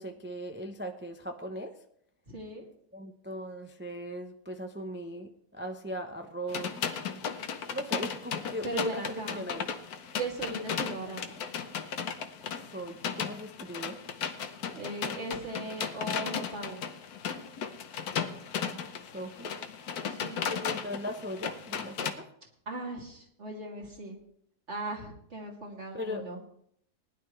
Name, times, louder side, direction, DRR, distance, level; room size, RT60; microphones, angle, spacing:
voice 1, 0.0-1.8 2.9-6.8 7.7-9.7 12.7-14.0 19.1-19.5 20.5-22.3 25.9-26.3, equal, 10° right, 4 dB, 0.5 m, -38 dB
voice 2, 2.3-2.6 8.6-9.4 10.1-11.3 14.7-16.8 20.1-20.5 22.7-24.2 24.7-26.4, right 2 dB, 45° right, -2 dB, 3.0 m, -38 dB
sound 1, 6.5-22.1, left 7 dB, 70° left, 1.4 m, -36 dB
19.5 x 11.0 x 3.2 m, 0.68 s
omnidirectional pair, 1.7 m